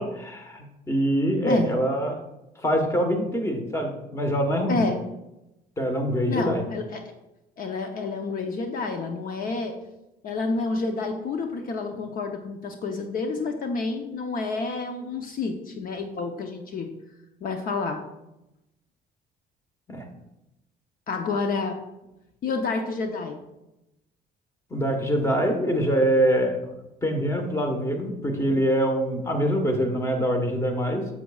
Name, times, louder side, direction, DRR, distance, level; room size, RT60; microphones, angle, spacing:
voice 1, 0.0-2.2 2.6-4.8 5.8-6.6 19.9-20.0 24.7-26.6 27.0-31.1, equal, 15° left, 4 dB, 1.3 m, -24 dB
voice 2, 4.7-5.0 6.3-7.0 7.6-9.8 10.2-16.9 17.4-18.0 21.1-21.8 22.4-23.4, left 3 dB, 55° left, 4 dB, 0.8 m, -29 dB
9.2 x 7.3 x 2.4 m, 0.93 s
cardioid pair, 110°, 17 cm